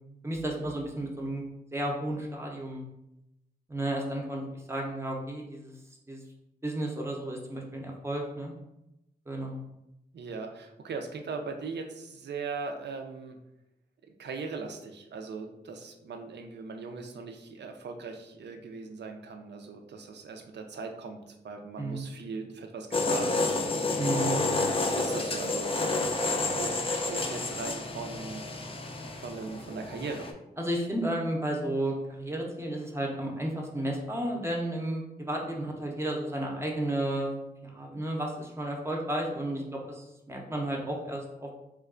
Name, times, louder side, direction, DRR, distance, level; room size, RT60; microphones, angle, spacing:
voice 1, 0.2-1.4 1.7-2.8 3.7-5.7 6.1-6.2 6.6-8.5 9.3-9.6 21.8-22.0 23.9-24.5 30.6-37.3 37.6-41.5, right 1 dB, 15° right, 0 dB, 0.6 m, -32 dB
voice 2, 10.1-13.4 14.2-21.2 21.4-23.6 25.0-25.8 26.5-28.4 29.1-30.3, right 4 dB, 85° right, 3 dB, 0.5 m, -39 dB
sound 1, 22.9-30.3, left 3 dB, 30° left, 0.3 m, -30 dB
3.1 x 2.2 x 3.6 m, 0.89 s
wide cardioid pair, 140°, 17 cm